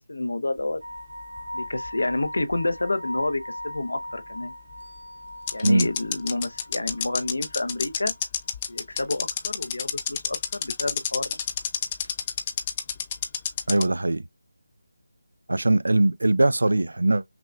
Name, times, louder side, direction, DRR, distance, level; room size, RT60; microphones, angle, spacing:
voice 1, 0.1-0.8 1.5-4.5 5.5-8.1 8.7-11.4, left 2 dB, 85° left, 0.8 m, -29 dB
sound 1, 0.8-8.5 8.8-8.9 12.0-12.1, left 1 dB, 70° right, 1.3 m, -39 dB
sound 2, 1.0-2.5 2.8-2.9 4.7-4.8 5.5-13.9, left 8 dB, 20° left, 0.4 m, -28 dB
voice 2, 13.7-14.3 15.5-17.2, right 2 dB, 90° right, 0.4 m, -21 dB
5.8 x 2.3 x 2.3 m
figure-of-eight pair, 170°, 0 cm